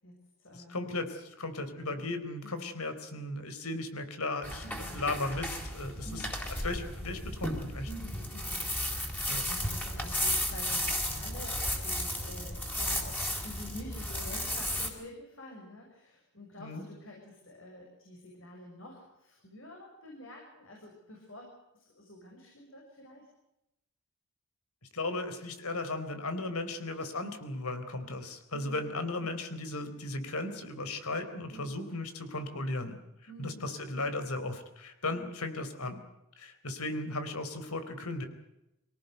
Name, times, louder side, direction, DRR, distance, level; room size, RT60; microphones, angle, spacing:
voice 1, 0.0-0.8 1.8-2.1 2.4-2.7 4.6-5.1 6.0-6.4 7.9-8.7 9.0-23.3 28.5-28.8 29.3-29.5 31.5-31.8 33.3-33.7, equal, 60° left, 0 dB, 6.5 m, -48 dB
voice 2, 0.5-4.6 4.9-6.3 6.6-7.9 9.3-9.4 16.6-16.8 24.9-33.0 33.4-36.0 36.4-38.3, left 2 dB, 90° left, 9 dB, 4.0 m, -36 dB
sound 1, 4.4-14.9, left 1 dB, 10° left, 3.9 m, -34 dB
25.0 x 18.0 x 8.0 m, 0.88 s
head